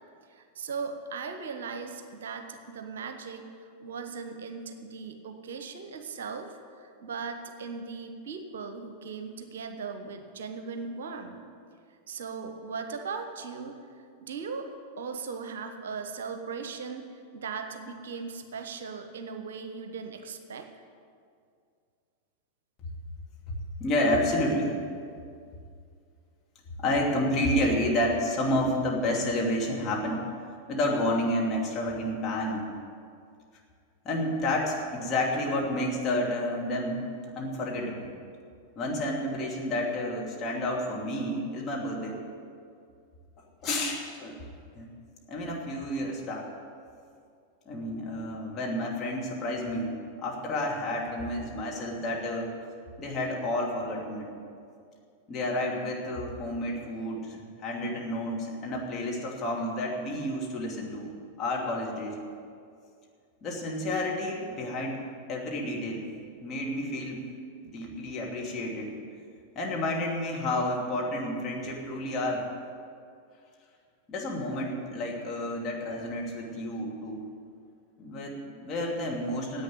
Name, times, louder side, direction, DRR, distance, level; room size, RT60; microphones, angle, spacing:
voice 1, 0.3-3.5 3.8-11.4 12.1-13.8 14.2-14.7 15.0-17.0 17.3-20.7, right 5 dB, 60° right, 7 dB, 1.0 m, -38 dB
voice 2, 23.8-24.8 26.8-30.2 30.7-32.7 34.0-37.0 37.4-38.1 38.8-42.2 43.6-44.4 44.7-44.9 45.3-46.5 47.7-49.9 50.2-52.5 53.0-54.3 55.3-57.4 57.6-61.1 61.4-62.2 63.4-66.1 66.4-67.2 67.6-68.9 69.5-72.4 74.1-77.2 78.0-79.6, left 1 dB, 30° left, -2 dB, 2.6 m, -30 dB
10.5 x 8.5 x 9.6 m, 2.3 s
figure-of-eight pair, 90°, 0 cm